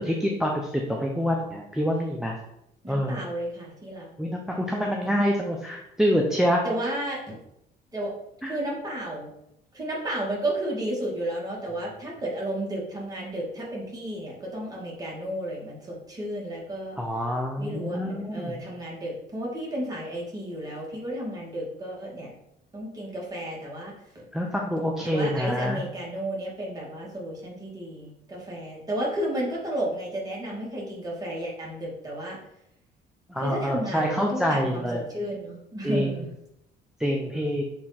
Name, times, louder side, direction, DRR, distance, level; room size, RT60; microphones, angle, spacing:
voice 1, 0.0-2.4 2.9-3.2 4.2-6.6 8.4-8.5 17.0-18.6 24.3-25.8 33.3-35.0 35.8-36.1 37.0-37.6, equal, 5° right, 0 dB, 0.8 m, -26 dB
voice 2, 2.8-4.1 4.5-4.9 6.6-7.4 7.9-8.1 8.4-9.3 9.7-17.0 17.6-22.3 22.7-24.3 25.0-32.4 33.4-36.3, right 1 dB, 20° right, -4 dB, 2.5 m, -33 dB
6.8 x 3.6 x 4.3 m, 0.80 s
cardioid pair, 110°, 17 cm